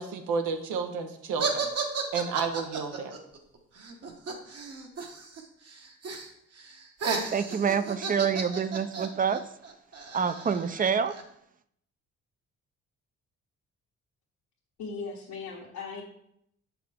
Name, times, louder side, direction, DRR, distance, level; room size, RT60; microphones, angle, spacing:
voice 1, 0.0-1.7 2.1-3.1, right 5 dB, 90° right, 6 dB, 0.9 m, -31 dB
sound 1, 1.4-5.4 5.7-6.3 6.6-11.2, right 5 dB, 55° right, 1.2 m, -34 dB
voice 2, 7.3-9.4 10.1-11.1, right 6 dB, 30° right, 12 dB, 0.5 m, -27 dB
voice 3, 14.8-16.0, left 4 dB, 80° left, -6 dB, 1.5 m, -38 dB
6.5 x 5.9 x 3.5 m, 0.73 s
cardioid pair, 90°, 30 cm